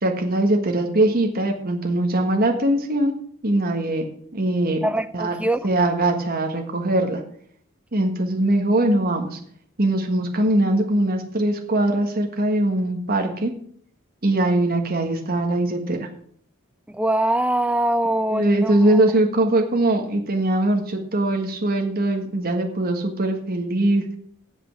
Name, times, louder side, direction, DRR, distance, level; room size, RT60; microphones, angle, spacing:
voice 1, 0.0-3.1 3.4-4.0 4.3-4.9 5.1-5.3 5.6-7.2 7.9-9.4 9.8-13.5 14.2-16.1 18.3-24.0, right 1 dB, 45° right, 1.5 m, -21 dB
voice 2, 4.8-5.7 16.9-19.0, right 1 dB, 5° right, 0.6 m, -23 dB
9.2 x 7.8 x 7.5 m
head